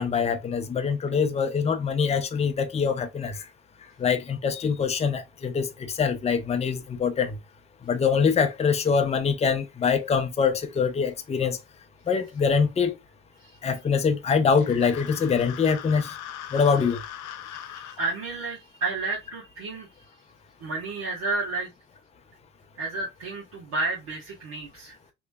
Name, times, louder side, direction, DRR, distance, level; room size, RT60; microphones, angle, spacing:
voice 1, 0.0-3.4 4.0-7.4 7.8-11.6 12.1-12.9 13.6-16.2 16.5-17.0, left 6 dB, 20° left, 0.6 m, -24 dB
sound 1, 14.5-18.0, left 10 dB, 75° left, 0.6 m, -40 dB
voice 2, 17.5-19.9 20.6-21.7 22.8-24.9, right 3 dB, 65° right, 1.6 m, -31 dB
3.1 x 3.0 x 2.3 m
supercardioid pair, 80°, 29 cm